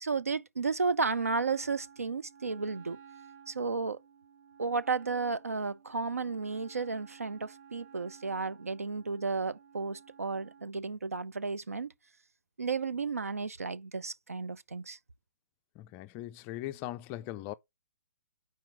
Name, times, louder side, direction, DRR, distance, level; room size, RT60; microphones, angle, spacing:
voice 1, 0.0-3.0 3.5-4.0 4.6-11.9 12.6-15.0, right 4 dB, 80° right, 0.5 m, -33 dB
Wind instrument woodwind instrument, 1.1-10.7, right 7 dB, 35° right, 1.2 m, -55 dB
voice 2, 15.8-17.5, left 14 dB, 20° left, 0.3 m, -40 dB
4.6 x 4.4 x 5.8 m
figure-of-eight pair, 125°, 8 cm